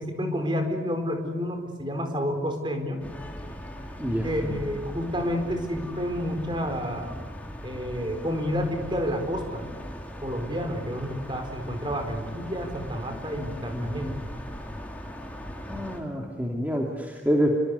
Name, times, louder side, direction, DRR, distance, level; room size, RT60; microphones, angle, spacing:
voice 1, 0.0-3.0 4.2-7.1 7.6-9.7 10.2-14.2, equal, 25° right, 5 dB, 4.6 m, -30 dB
sound 1, 3.0-16.0, equal, 10° left, 3.6 m, -39 dB
voice 2, 4.0-4.6 13.7-14.2 15.7-17.5, equal, 10° right, -1 dB, 2.7 m, -28 dB
28.0 x 25.0 x 8.4 m, 1.5 s
head